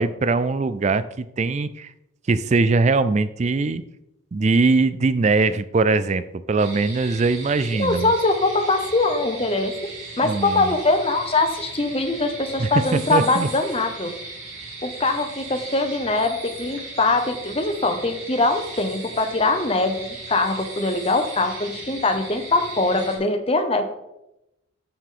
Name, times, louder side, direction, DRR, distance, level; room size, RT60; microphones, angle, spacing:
voice 1, 0.0-1.9 2.3-3.8 4.3-6.2 6.5-8.1 10.2-10.7 12.6-13.5, right 3 dB, 30° right, 13 dB, 0.3 m, -21 dB
sound 1, 6.6-23.2, right 3 dB, 65° right, 3.1 m, -37 dB
voice 2, 7.8-9.8 10.2-14.1 14.8-23.9, left 2 dB, 25° left, 6 dB, 0.8 m, -22 dB
14.5 x 4.9 x 3.8 m, 0.88 s
head